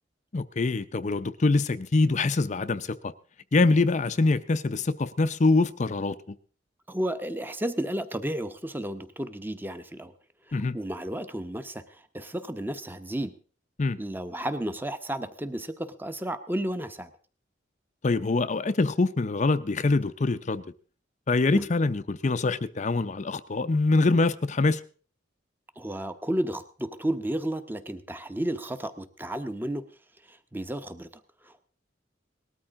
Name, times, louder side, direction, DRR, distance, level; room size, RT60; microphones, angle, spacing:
voice 1, 0.3-3.1 3.5-6.2 10.5-10.8 13.8-14.0 18.0-20.6 21.3-24.8, left 3 dB, 40° left, 0.6 m, -24 dB
voice 2, 6.9-10.1 10.5-13.4 14.0-17.1 21.5-21.6 25.8-29.9 30.3-31.1 31.4-31.6, right 1 dB, 10° right, 0.9 m, -32 dB
19.0 x 13.0 x 3.7 m
head